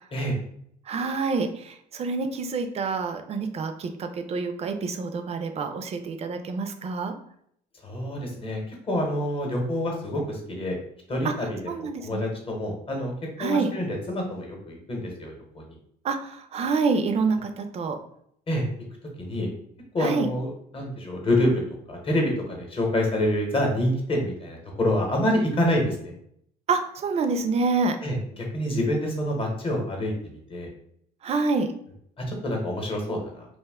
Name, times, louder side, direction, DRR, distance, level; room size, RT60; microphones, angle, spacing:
voice 1, 0.9-7.1 11.2-11.3 11.7-12.2 13.4-13.7 16.0-18.0 20.0-20.3 26.7-28.0 31.2-31.7, right 4 dB, 40° right, 7 dB, 0.4 m, -27 dB
voice 2, 7.8-10.8 11.1-13.1 13.4-15.6 18.5-18.7 19.2-19.5 19.9-21.6 21.9-26.1 28.0-30.7 32.2-33.4, left 1 dB, 30° left, 1 dB, 0.9 m, -27 dB
2.5 x 2.1 x 3.4 m, 0.69 s
cardioid pair, 110°, 17 cm